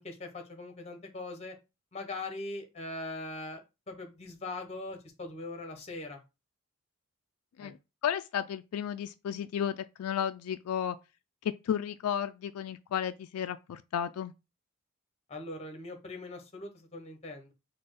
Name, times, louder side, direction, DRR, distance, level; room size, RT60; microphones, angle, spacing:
voice 1, 0.0-1.5 1.9-6.2 7.6-7.7 15.3-17.5, left 2 dB, 30° left, 0.9 m, -41 dB
voice 2, 8.0-11.0 11.4-14.3, left 9 dB, 85° left, 0.3 m, -33 dB
4.3 x 2.3 x 4.7 m
head